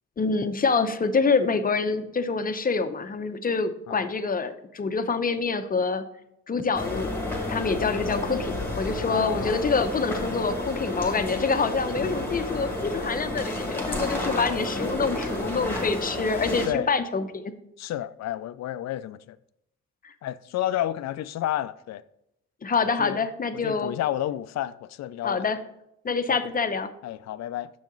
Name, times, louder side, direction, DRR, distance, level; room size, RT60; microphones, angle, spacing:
voice 1, 0.2-6.0 6.5-7.1 7.5-17.5 20.0-20.1 22.6-23.9 25.2-25.6 26.0-26.9, left 4 dB, 30° left, 0.7 m, -26 dB
sound 1, 6.7-16.7, left 1 dB, 5° left, 1.7 m, -30 dB
voice 2, 9.1-9.7 16.7-16.9 17.8-19.4 20.2-22.0 23.0-23.3 23.6-25.4 26.3-26.4 27.0-27.7, left 12 dB, 60° left, 0.5 m, -31 dB
7.2 x 6.5 x 3.9 m
cardioid pair, 90°, 30 cm